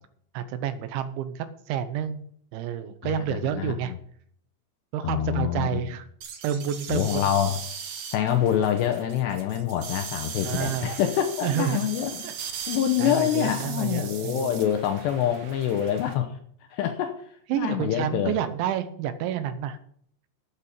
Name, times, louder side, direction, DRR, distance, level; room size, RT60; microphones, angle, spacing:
voice 1, 0.3-2.2 2.5-3.9 4.9-6.1 6.4-7.2 10.4-10.9 11.4-11.9 12.2-12.3 13.0-14.5 17.5-19.8, right 9 dB, 80° right, 11 dB, 3.0 m, -29 dB
voice 2, 3.0-4.0 5.0-5.9 6.9-7.6 8.1-16.4 16.7-18.3, left 10 dB, 80° left, 6 dB, 2.6 m, -26 dB
sound 1, 6.2-16.1, right 7 dB, 65° right, 2.1 m, -39 dB
13.0 x 8.5 x 5.3 m, 0.63 s
omnidirectional pair, 5.8 m